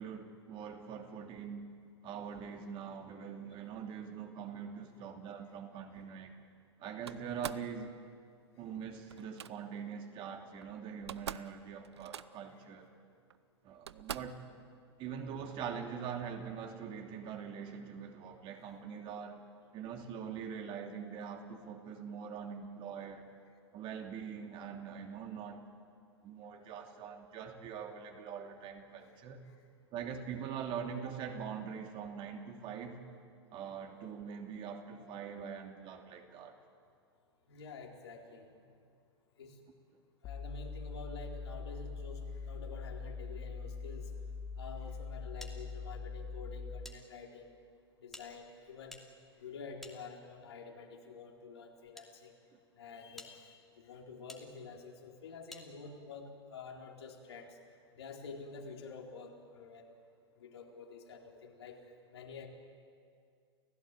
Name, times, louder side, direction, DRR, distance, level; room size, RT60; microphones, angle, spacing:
voice 1, 0.0-1.7 2.0-6.4 6.8-8.0 8.6-12.9 13.6-14.4 15.0-19.4 19.7-23.3 23.7-25.6 26.2-29.5 29.9-33.0 33.5-36.6, right 7 dB, 35° right, 4 dB, 2.9 m, -43 dB
Slam, 7.1-7.7 9.1-9.5 10.6-10.7 10.9-11.5 11.8-12.5 13.3-13.4 13.9-14.4, right 9 dB, 70° right, 0.7 m, -44 dB
voice 2, 37.5-38.7 39.4-39.6 40.2-44.1 44.6-47.5 48.0-49.0 49.4-52.4 52.8-57.6 57.9-59.9 60.4-61.8 62.1-62.5, left 4 dB, 70° left, 0 dB, 4.1 m, -49 dB
sound 1, 40.2-47.0, left 4 dB, 35° left, 1.8 m, -43 dB
sound 2, 45.4-47.0 47.3-47.4 48.1-50.5 51.3-52.1 52.6-52.7 53.1-53.3 54.3-54.4 55.5-55.7, left 1 dB, ahead, 2.7 m, -53 dB
29.5 x 16.0 x 9.1 m, 2.3 s
figure-of-eight pair, 100°, 14 cm